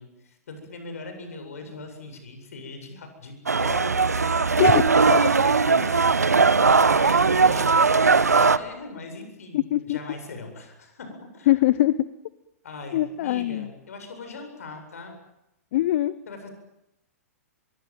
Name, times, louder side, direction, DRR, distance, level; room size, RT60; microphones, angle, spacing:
voice 1, 0.0-4.5 5.2-11.6 12.6-15.1 16.3-16.5, left 3 dB, 65° left, 6 dB, 8.0 m, -40 dB
sound 1, 3.5-8.6, right 4 dB, 85° right, 1.2 m, -19 dB
voice 2, 4.6-5.2 9.5-10.0 11.5-11.9 12.9-13.7 15.7-16.1, left 15 dB, 50° left, 17 dB, 0.9 m, -22 dB
25.0 x 23.0 x 9.2 m, 0.88 s
figure-of-eight pair, 110°, 8 cm